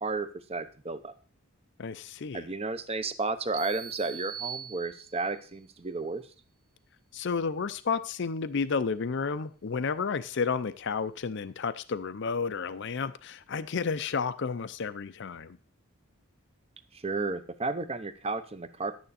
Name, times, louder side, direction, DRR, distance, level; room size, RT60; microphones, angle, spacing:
voice 1, 0.0-1.1 2.3-6.2 16.9-18.9, right 3 dB, 30° right, 0.8 m, -33 dB
voice 2, 1.8-2.5 7.1-15.6, left 5 dB, 55° left, 0.5 m, -31 dB
sound 1, 3.5-5.4, right 8 dB, 80° right, 1.1 m, -41 dB
11.0 x 9.1 x 4.2 m
head